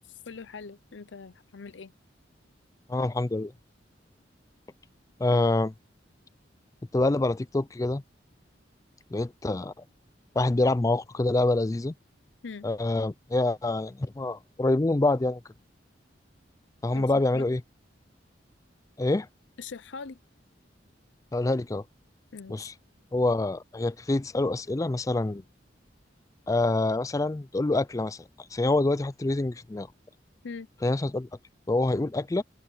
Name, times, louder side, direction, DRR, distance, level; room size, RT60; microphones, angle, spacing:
voice 1, 0.3-1.9 12.4-12.7 16.9-17.1 17.3-17.5 19.6-20.2 22.3-22.7 30.4-30.7, left 5 dB, 85° left, 0.6 m, -41 dB
voice 2, 2.9-3.5 5.2-5.7 6.9-8.0 9.1-9.7 10.4-11.9 12.6-15.4 16.8-17.6 19.0-19.3 21.3-21.8 22.5-22.7 23.1-25.4 26.5-28.2 28.5-29.9 30.8-31.3 31.7-32.4, left 2 dB, 20° left, 0.4 m, -26 dB
open air
head